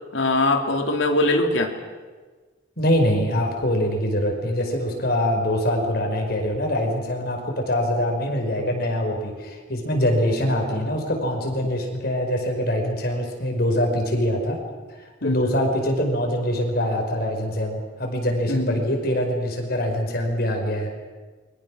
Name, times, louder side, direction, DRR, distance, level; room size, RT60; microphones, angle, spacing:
voice 1, 0.1-1.7 15.2-15.6 18.5-18.8, left 2 dB, 85° left, 4 dB, 3.1 m, -22 dB
voice 2, 2.8-14.6 15.2-20.9, equal, 55° left, 2 dB, 4.9 m, -24 dB
29.0 x 23.0 x 6.3 m, 1.4 s
head